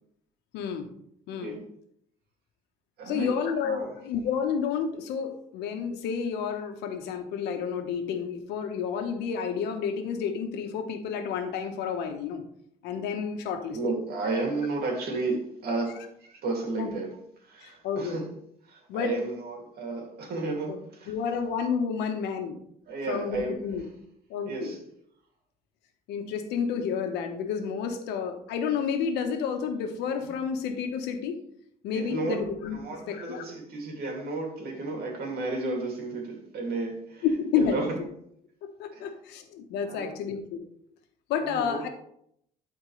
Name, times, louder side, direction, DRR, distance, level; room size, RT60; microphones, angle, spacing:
voice 1, 0.5-0.9 1.3-1.5 3.1-12.4 12.8-13.8 16.8-16.9 17.6-18.2 18.9-19.2 20.7-20.8 21.1-22.6 23.1-23.8 24.3-24.8 26.1-31.4 31.8-32.8 33.1-33.4 37.2-37.8 38.8-40.6 41.3-41.9, left 6 dB, 90° left, 6 dB, 1.2 m, -30 dB
voice 2, 3.0-3.3 3.6-3.9 13.7-17.1 17.4-18.3 18.7-21.1 22.9-23.6 24.5-24.8 31.9-32.4 32.7-37.3 37.6-38.0 38.9-39.1 39.8-40.1 41.4-41.8, right 3 dB, 65° right, 1 dB, 2.6 m, -32 dB
12.5 x 4.4 x 3.3 m, 0.71 s
cardioid pair, 110°, 17 cm